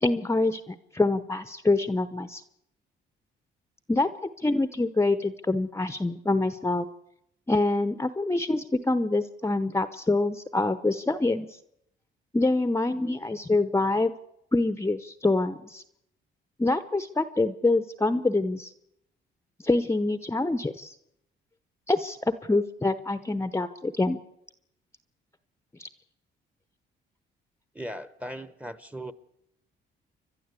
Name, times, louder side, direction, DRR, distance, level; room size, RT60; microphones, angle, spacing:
voice 1, 0.0-2.4 3.9-4.1 4.4-6.9 7.5-11.5 12.3-14.1 14.5-15.8 16.6-18.7 19.6-20.9 21.9-24.2 25.8-25.9, left 2 dB, 15° left, 11 dB, 0.8 m, -25 dB
voice 2, 27.7-29.1, equal, 5° right, 15 dB, 1.1 m, -38 dB
29.5 x 11.5 x 8.3 m, 0.79 s
cardioid pair, 90°, 20 cm